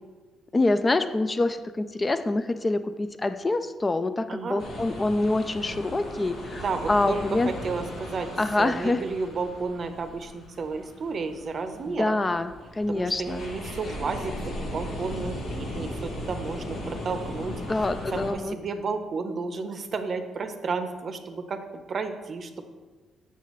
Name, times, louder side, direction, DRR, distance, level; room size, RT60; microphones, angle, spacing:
voice 1, 0.5-7.5 8.4-9.0 11.9-13.5 17.7-18.5, left 2 dB, 25° left, 10 dB, 0.3 m, -26 dB
voice 2, 4.3-4.6 6.5-12.2 12.9-17.9 18.1-22.6, right 4 dB, 50° right, 8 dB, 0.6 m, -32 dB
sound 1, 4.6-18.3, left 1 dB, 85° left, 1.3 m, -37 dB
7.3 x 5.6 x 3.1 m, 1.3 s
cardioid pair, 90°, 0 cm